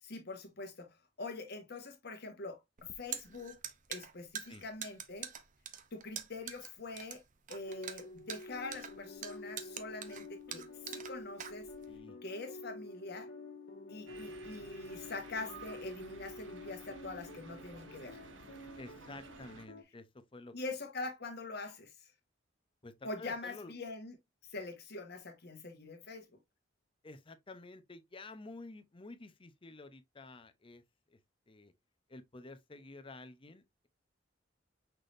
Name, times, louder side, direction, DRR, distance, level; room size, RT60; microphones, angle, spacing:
voice 1, 0.0-3.6 3.9-5.3 5.9-7.2 7.5-11.7 12.2-13.3 13.9-18.2 20.5-22.1 23.0-24.1 24.5-26.3, left 3 dB, 60° left, 1.4 m, -44 dB
sound 1, 2.8-12.0, right 9 dB, 45° right, 0.6 m, -45 dB
sound 2, 7.6-19.8, left 2 dB, 80° left, 1.7 m, -49 dB
voice 2, 11.9-12.2 18.8-20.5 22.8-23.7 27.0-30.8 31.1-31.2 31.5-31.7 32.1-33.9, left 2 dB, 30° left, 0.6 m, -51 dB
sound 3, 14.1-19.7, right 4 dB, 75° right, 1.0 m, -54 dB
5.9 x 3.4 x 2.5 m
head